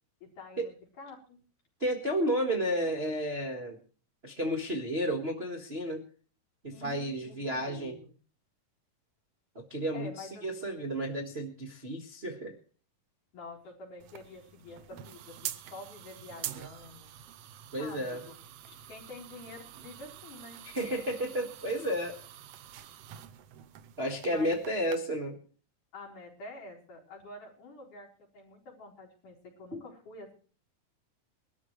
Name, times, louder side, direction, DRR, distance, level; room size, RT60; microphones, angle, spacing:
voice 1, 0.2-1.4 6.7-8.1 9.9-10.4 13.3-17.1 17.8-18.4 18.7-20.6 24.2-24.6 25.9-30.3, left 2 dB, 65° left, -2 dB, 5.7 m, -48 dB
voice 2, 1.8-3.8 4.2-6.0 6.6-8.0 9.5-12.6 17.7-18.3 20.7-22.2 24.0-25.4 29.7-29.8, equal, 35° right, 0 dB, 1.0 m, -32 dB
sound 1, 14.0-25.0, right 11 dB, 85° right, 1.4 m, -46 dB
22.5 x 13.0 x 3.2 m, 0.40 s
omnidirectional pair, 3.9 m